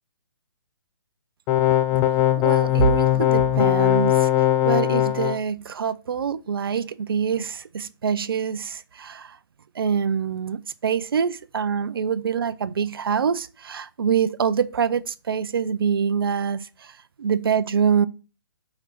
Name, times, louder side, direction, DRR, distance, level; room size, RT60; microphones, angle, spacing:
sound 1, 1.5-5.4, left 12 dB, 20° left, 0.4 m, -19 dB
voice 1, 2.4-9.4 9.8-18.1, right 7 dB, 70° right, 0.5 m, -25 dB
5.8 x 4.3 x 5.8 m
figure-of-eight pair, 135°, 13 cm